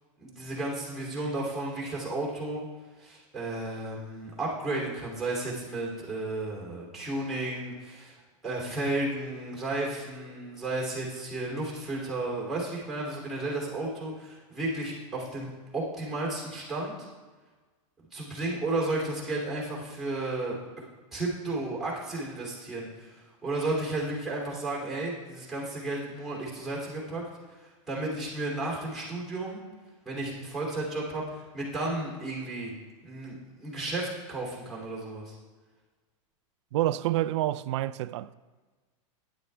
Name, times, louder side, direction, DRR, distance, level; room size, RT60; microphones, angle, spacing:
voice 1, 0.2-2.6 3.0-8.2 8.4-16.9 18.1-20.6 21.1-27.3 27.6-29.6 30.0-32.7 33.0-35.3, right 2 dB, ahead, 2.9 m, -33 dB
voice 2, 36.7-38.3, right 14 dB, 55° right, 0.4 m, -28 dB
12.0 x 10.0 x 3.4 m
supercardioid pair, 160°, 18 cm